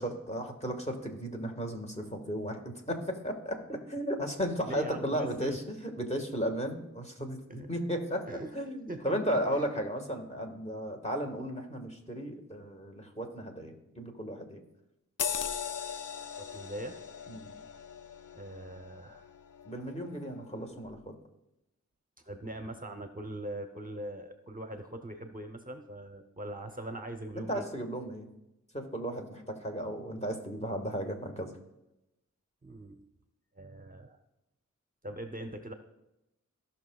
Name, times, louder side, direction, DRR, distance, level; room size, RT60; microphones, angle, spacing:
voice 1, 0.0-2.6 2.9-5.6 6.0-8.2 8.5-14.6 17.3-17.5 19.6-21.0 27.3-28.3 28.7-31.5, equal, 20° left, 3 dB, 1.6 m, -35 dB
voice 2, 4.7-5.6 7.5-7.7 8.3-9.0 9.3-9.7 16.4-17.0 18.3-19.3 22.2-27.7 32.6-33.0 33.6-34.2 35.0-35.7, right 1 dB, 30° right, 6 dB, 0.8 m, -41 dB
sound 1, 15.2-20.2 20.6-20.8, left 7 dB, 85° left, 0.5 m, -39 dB
16.5 x 5.8 x 2.3 m, 0.91 s
cardioid pair, 45°, 31 cm